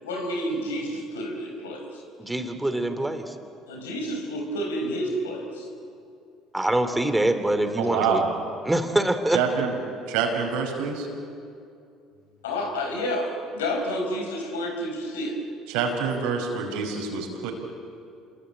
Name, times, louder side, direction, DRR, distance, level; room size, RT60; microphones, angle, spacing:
voice 1, 0.0-2.0 3.7-5.7 12.4-15.4, equal, 90° left, 3 dB, 4.7 m, -30 dB
voice 2, 2.2-3.4 6.5-8.2 8.6-9.4, right 1 dB, 10° right, 8 dB, 3.1 m, -24 dB
voice 3, 7.8-8.3 9.3-9.7 10.1-11.1 15.7-17.5, right 6 dB, 75° right, 3 dB, 5.4 m, -26 dB
28.0 x 22.5 x 8.9 m, 2.5 s
hypercardioid pair, 70°, 0 cm